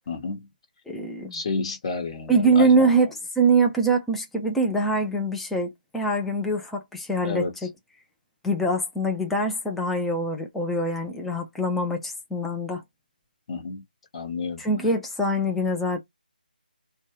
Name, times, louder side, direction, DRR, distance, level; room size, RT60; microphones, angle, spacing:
voice 1, 0.1-0.5 1.3-2.9 7.2-7.7 13.5-13.8 14.1-14.7, left 4 dB, 35° left, 1.1 m, -31 dB
voice 2, 0.9-1.4 2.3-7.4 8.4-12.8 14.6-16.0, right 2 dB, 5° left, 0.5 m, -23 dB
2.6 x 2.3 x 3.1 m
figure-of-eight pair, 155°, 5 cm